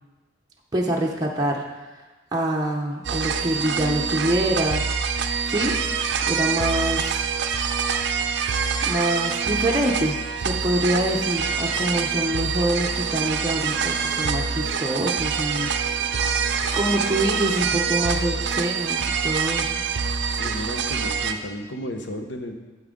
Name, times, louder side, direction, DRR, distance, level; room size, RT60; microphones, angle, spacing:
voice 1, 0.7-1.6 2.3-4.8 5.5-5.7 6.3-7.2 8.8-15.7 16.7-19.8, right 1 dB, 20° right, -2 dB, 0.7 m, -25 dB
sound 1, 3.0-21.3, right 6 dB, 60° right, 0.5 m, -25 dB
sound 2, 11.0-19.0, equal, 20° left, 1.4 m, -45 dB
voice 2, 20.4-22.5, left 1 dB, 60° left, 5 dB, 0.9 m, -33 dB
8.9 x 8.1 x 3.7 m, 1.2 s
head